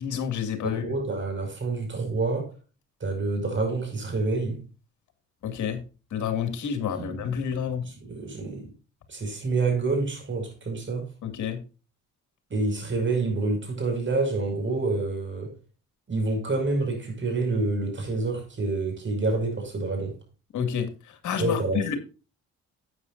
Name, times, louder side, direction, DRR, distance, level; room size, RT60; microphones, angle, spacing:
voice 1, 0.0-0.8 5.4-5.8 6.1-7.9 11.2-11.6 20.5-22.0, left 8 dB, 75° left, 2.3 m, -29 dB
voice 2, 0.6-2.5 3.0-4.6 6.9-7.2 7.8-8.7 9.1-11.1 12.5-15.5 16.1-20.2 21.4-21.9, right 3 dB, 40° right, 5.8 m, -28 dB
12.5 x 8.7 x 2.6 m
cardioid pair, 90°, 30 cm